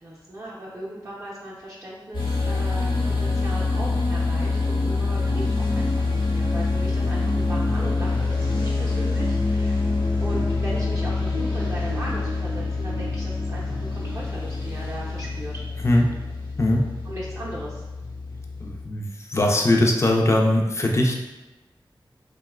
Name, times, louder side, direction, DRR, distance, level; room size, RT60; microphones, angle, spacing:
voice 1, 0.0-9.8 10.2-15.6 17.0-17.8, right 1 dB, 35° right, -6 dB, 0.5 m, -37 dB
sound 1, 2.1-18.8, left 3 dB, 70° left, 0.9 m, -25 dB
voice 2, 18.6-21.1, left 1 dB, 30° left, 0 dB, 0.4 m, -20 dB
2.9 x 2.1 x 2.2 m, 1.1 s
cardioid pair, 45°, 9 cm